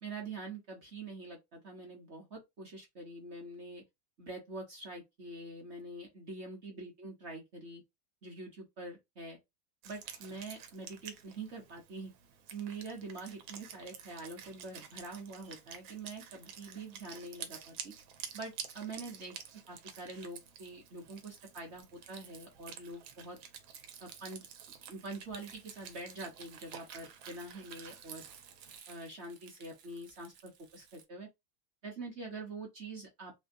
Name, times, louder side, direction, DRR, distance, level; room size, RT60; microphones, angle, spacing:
voice 1, 0.0-3.8 4.2-7.8 8.2-9.4 9.8-12.1 12.5-17.9 18.3-19.3 19.7-23.4 24.0-24.5 24.9-28.2 28.9-31.3 31.8-33.3, right 3 dB, 50° right, 0.8 m, -45 dB
Wind instrument woodwind instrument, 9.8-28.8, right 8 dB, 80° right, 1.5 m, -50 dB
Crumpling crinkling, 25.4-31.1, right 7 dB, 65° right, 1.1 m, -59 dB
3.3 x 2.7 x 2.6 m
omnidirectional pair, 2.2 m